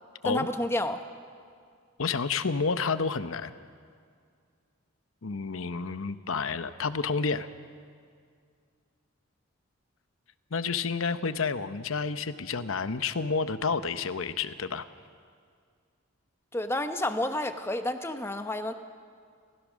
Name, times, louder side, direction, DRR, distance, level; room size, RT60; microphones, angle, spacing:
voice 1, 0.2-1.0 16.5-18.7, left 1 dB, 10° left, 8 dB, 0.9 m, -30 dB
voice 2, 2.0-3.5 5.2-7.5 10.5-14.9, left 5 dB, 80° left, 12 dB, 0.8 m, -30 dB
28.0 x 15.5 x 6.3 m, 2.1 s
head